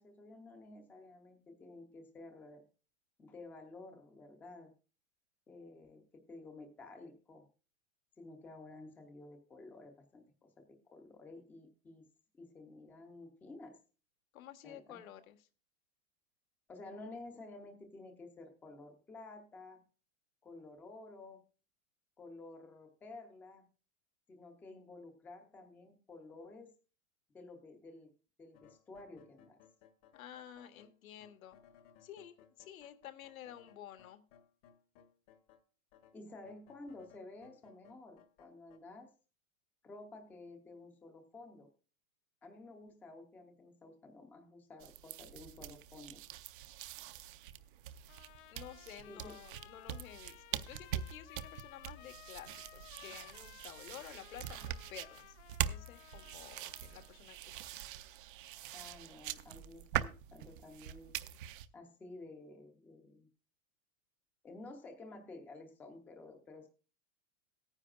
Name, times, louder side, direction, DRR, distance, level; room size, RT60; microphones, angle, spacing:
voice 1, 0.0-2.6 3.2-4.7 5.5-7.5 8.2-12.0 12.3-13.8 14.6-15.0 16.7-19.8 20.4-21.4 22.2-23.6 24.3-26.7 27.3-28.1 28.4-29.6 36.1-39.1 39.8-41.7 42.4-46.2 49.1-49.4 58.7-61.2 61.7-63.3 64.4-66.7, left 2 dB, 5° left, 5 dB, 0.5 m, -52 dB
voice 2, 14.3-15.4 30.1-31.6 32.0-34.2 48.5-55.4 55.7-57.6, left 11 dB, 90° left, 8 dB, 1.6 m, -52 dB
sound 1, 28.5-35.6 35.9-38.8, left 8 dB, 30° left, 0.9 m, -64 dB
sound 2, 44.8-61.7, right 11 dB, 40° right, 0.5 m, -43 dB
Trumpet, 48.1-57.2, left 15 dB, 60° left, 0.6 m, -58 dB
17.5 x 9.8 x 2.4 m, 0.34 s
supercardioid pair, 175°, 41 cm